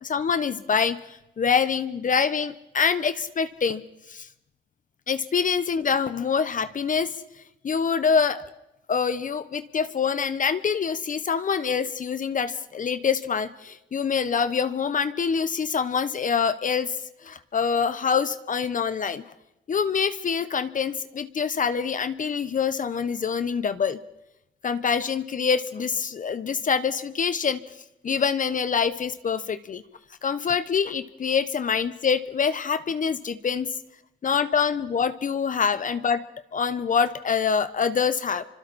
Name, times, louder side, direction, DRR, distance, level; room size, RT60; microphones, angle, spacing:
voice 1, 0.0-3.8 4.1-4.3 5.1-7.2 7.6-8.4 8.9-17.0 17.2-19.2 19.7-24.0 24.6-27.6 28.0-29.8 30.2-33.7 34.2-38.4, left 6 dB, 40° left, 13 dB, 1.0 m, -25 dB
28.5 x 25.5 x 4.3 m, 0.91 s
cardioid pair, 90°, 20 cm